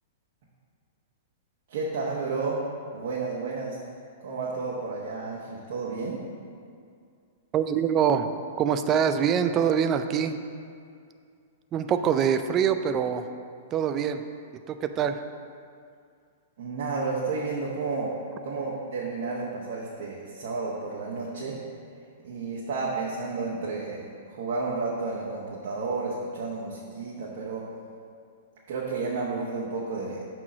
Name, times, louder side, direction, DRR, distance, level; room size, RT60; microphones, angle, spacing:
voice 1, 1.7-2.6 2.9-3.8 4.2-6.2 16.6-18.1 18.4-21.6 22.2-27.7 28.7-30.2, right 4 dB, 60° right, -4 dB, 1.1 m, -31 dB
voice 2, 7.5-8.3 8.6-10.3 11.7-13.3 13.7-14.2 14.7-15.2, right 8 dB, 30° right, 9 dB, 0.4 m, -24 dB
6.0 x 4.5 x 6.1 m, 2.3 s
hypercardioid pair, 110°, 0 cm